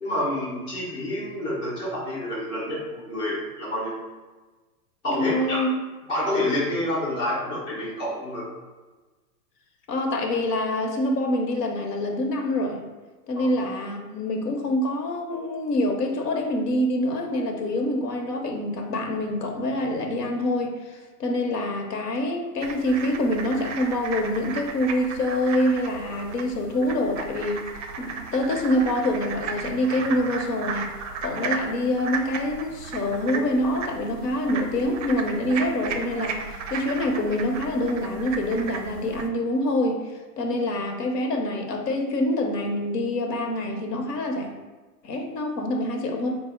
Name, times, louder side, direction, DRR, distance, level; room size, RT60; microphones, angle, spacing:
voice 1, 0.0-3.9 5.0-5.6 6.1-8.5 13.4-13.5, left 1 dB, 10° left, -7 dB, 0.5 m, -28 dB
voice 2, 5.1-5.7 9.9-12.8 13.3-27.6 28.0-30.9 31.2-44.5 45.0-46.4, left 1 dB, 75° left, 3 dB, 0.9 m, -26 dB
sound 1, 22.6-39.3, right 5 dB, 50° right, 0.5 m, -35 dB
3.8 x 2.1 x 3.6 m, 1.2 s
hypercardioid pair, 130°, 48 cm